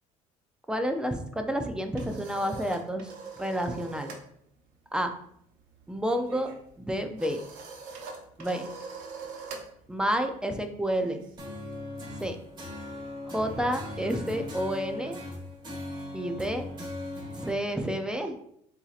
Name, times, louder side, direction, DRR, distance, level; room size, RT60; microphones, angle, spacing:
voice 1, 0.7-3.1 3.4-4.1 4.9-5.1 5.9-6.5 6.8-7.4 8.4-8.7 9.9-11.2 12.2-12.4 13.3-15.2 16.1-16.7 17.3-18.4, equal, 5° right, 6 dB, 0.4 m, -30 dB
sound 1, 1.6-4.3 4.6-4.9 5.1-11.8, right 4 dB, 75° right, 0.9 m, -44 dB
sound 2, 11.4-17.5, left 1 dB, 30° right, 1.5 m, -38 dB
7.0 x 2.8 x 2.4 m, 0.70 s
cardioid pair, 125°, 15 cm